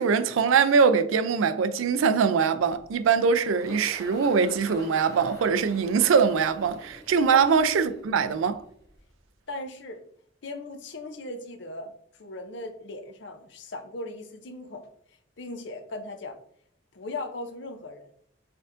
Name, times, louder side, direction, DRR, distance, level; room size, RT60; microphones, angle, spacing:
voice 1, 0.0-8.6, right 6 dB, 80° right, 0.4 m, -22 dB
Engine, 2.6-9.2, left 1 dB, 15° left, 1.2 m, -47 dB
voice 2, 9.5-10.0 10.4-11.9 12.2-14.8 15.4-16.4 16.9-18.1, left 2 dB, 60° left, 0.6 m, -38 dB
4.5 x 3.6 x 2.5 m
head